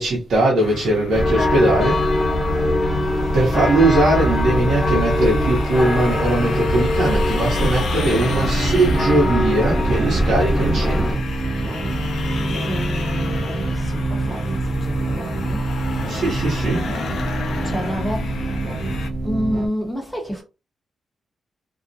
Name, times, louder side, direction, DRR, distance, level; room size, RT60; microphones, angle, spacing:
voice 1, 0.0-2.0 3.3-11.2 16.0-16.9, right 2 dB, 70° right, 0.8 m, -20 dB
sound 1, 0.6-19.1, left 4 dB, 75° left, 0.4 m, -32 dB
sound 2, 1.1-11.1, left 1 dB, 25° left, 0.9 m, -21 dB
sound 3, 8.1-19.7, right 2 dB, 55° right, 0.3 m, -26 dB
voice 2, 12.7-15.7 17.6-18.5 19.2-20.4, equal, 5° right, 0.8 m, -29 dB
2.3 x 2.0 x 2.6 m
cardioid pair, 115°, 0 cm